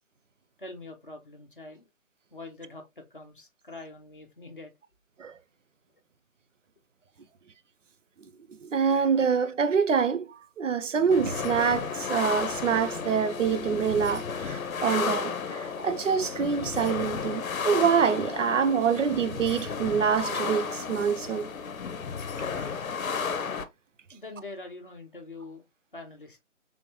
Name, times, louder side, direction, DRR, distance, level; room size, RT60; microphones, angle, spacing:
voice 1, 0.6-1.9 2.3-4.7 24.1-25.6 25.9-26.4, left 2 dB, 40° left, 0.7 m, -44 dB
voice 2, 8.6-21.5 22.5-22.7, right 6 dB, 65° right, 0.5 m, -26 dB
sound 1, 11.1-23.6, left 6 dB, 85° left, 0.7 m, -33 dB
3.4 x 3.0 x 2.9 m
figure-of-eight pair, 180°, 40 cm